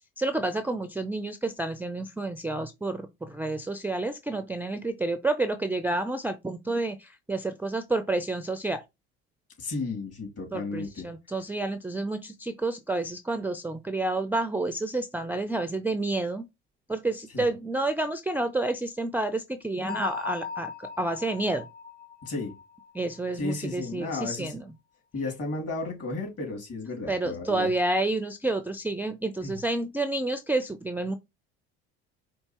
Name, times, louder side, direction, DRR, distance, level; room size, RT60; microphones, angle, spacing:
voice 1, 0.2-8.8 10.5-16.5 16.9-20.7 21.0-21.7 22.9-24.6 27.1-31.2, right 2 dB, 5° right, 0.4 m, -29 dB
voice 2, 9.6-11.1 17.3-17.5 22.2-22.6 23.4-24.5 25.1-27.7 29.4-29.6, left 3 dB, 45° left, 2.7 m, -33 dB
Bell, 19.9-23.5, left 7 dB, 30° left, 1.1 m, -39 dB
4.5 x 2.7 x 2.9 m
hypercardioid pair, 75°, 32 cm